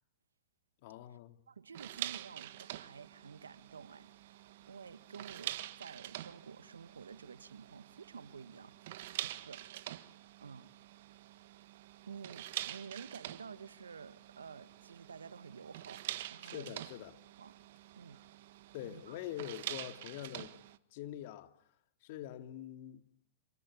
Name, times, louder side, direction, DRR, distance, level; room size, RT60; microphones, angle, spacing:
voice 1, 0.8-1.4 16.4-17.1 18.7-20.6 20.9-21.5 22.0-23.0, left 13 dB, 55° left, 2.8 m, -45 dB
voice 2, 1.5-8.8 9.2-9.7 10.4-10.7 12.1-16.0 16.3-16.8 17.4-17.5 18.0-18.2 18.8-19.2, right 6 dB, 85° right, 1.5 m, -51 dB
sound 1, 1.7-20.8, right 14 dB, 60° right, 1.5 m, -46 dB
28.5 x 21.5 x 9.8 m
hypercardioid pair, 105°, 0 cm